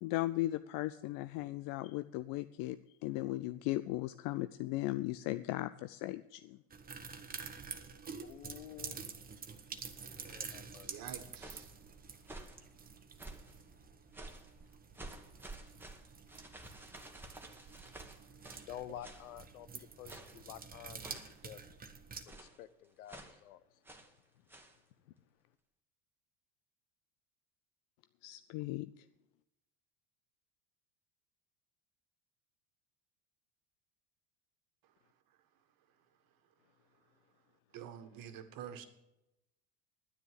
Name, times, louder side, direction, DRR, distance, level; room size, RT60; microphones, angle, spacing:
voice 1, 0.0-6.6 28.2-29.0, left 17 dB, 50° left, 0.5 m, -37 dB
sound 1, 6.7-22.2, right 5 dB, 20° right, 1.1 m, -49 dB
voice 2, 8.2-9.1 10.2-10.9 18.2-18.3 18.6-21.8 22.2-23.8 24.3-24.5 25.0-25.1, left 12 dB, 80° left, 0.8 m, -50 dB
voice 3, 10.8-11.7 34.8-34.9 37.7-38.8, right 9 dB, 50° right, 1.6 m, -48 dB
sound 2, 11.1-11.7 12.2-12.6 13.2-13.6 14.1-14.5 14.9-18.7 19.0-19.3 20.1-20.4 21.0-21.4 22.3-22.6 23.1-23.4 23.8-24.1 24.5-24.8, right 2 dB, 5° right, 1.5 m, -51 dB
9.9 x 9.7 x 7.6 m
hypercardioid pair, 90°, 43 cm